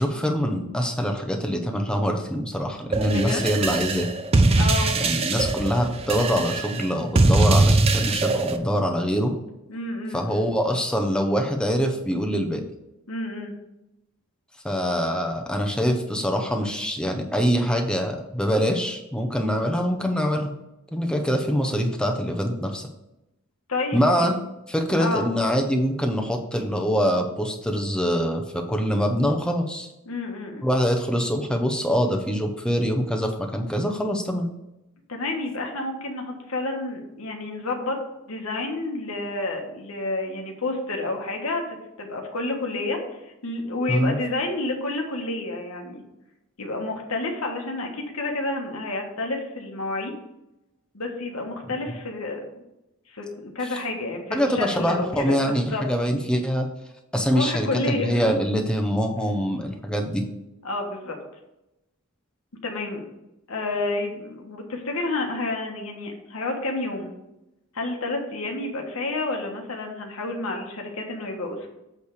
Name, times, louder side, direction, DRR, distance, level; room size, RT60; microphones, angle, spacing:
voice 1, 0.0-4.1 5.0-9.4 10.1-12.6 14.6-20.5 20.9-22.9 23.9-24.4 24.7-29.9 30.6-34.5 43.9-44.2 54.3-56.7 57.1-60.3, equal, 5° left, 4 dB, 0.7 m, -24 dB
sound 1, 2.9-8.6, right 2 dB, 25° right, 0.5 m, -22 dB
voice 2, 3.1-3.5 4.6-4.9 9.7-10.5 13.1-13.5 23.7-24.3 25.0-25.2 30.1-30.6 35.1-38.0 38.3-46.0 46.6-50.1 50.9-52.4 53.1-55.8 57.3-58.3 60.6-61.2 62.6-63.1 63.5-67.1 67.7-71.7, left 2 dB, 80° left, 2 dB, 1.4 m, -30 dB
8.3 x 3.3 x 6.6 m, 0.92 s
head